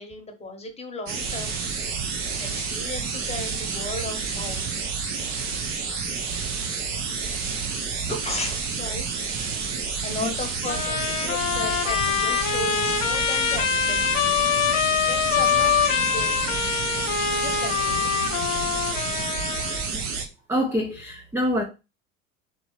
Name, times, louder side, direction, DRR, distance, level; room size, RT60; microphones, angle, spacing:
voice 1, 0.0-1.6 2.4-4.6 7.2-7.6 8.1-9.1 10.0-14.4 15.0-16.4 17.3-18.1 19.4-19.9, left 2 dB, 15° left, 1.1 m, -35 dB
sound 1, 1.1-20.2, right 5 dB, 45° right, 1.0 m, -29 dB
Trumpet, 10.7-19.9, left 8 dB, 60° left, 1.0 m, -24 dB
voice 2, 20.5-21.6, equal, 5° right, 0.6 m, -25 dB
4.3 x 3.0 x 3.3 m
figure-of-eight pair, 75°, 40 cm